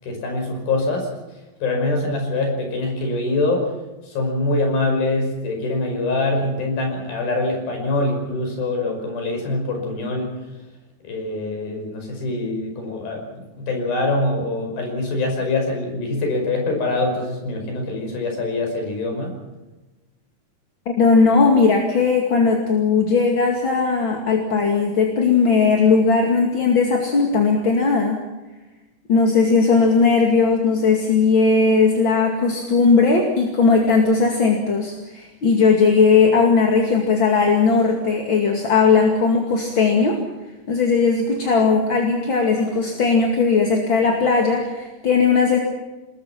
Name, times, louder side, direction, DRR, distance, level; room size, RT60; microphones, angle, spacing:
voice 1, 0.0-1.2 1.6-3.7 4.1-10.4 11.0-13.3 13.6-19.3, left 2 dB, 70° left, 3 dB, 7.4 m, -24 dB
voice 2, 21.0-28.2 29.1-40.2 40.7-45.6, left 4 dB, 35° left, 1 dB, 2.5 m, -17 dB
26.5 x 21.0 x 5.9 m, 1.1 s
omnidirectional pair, 4.4 m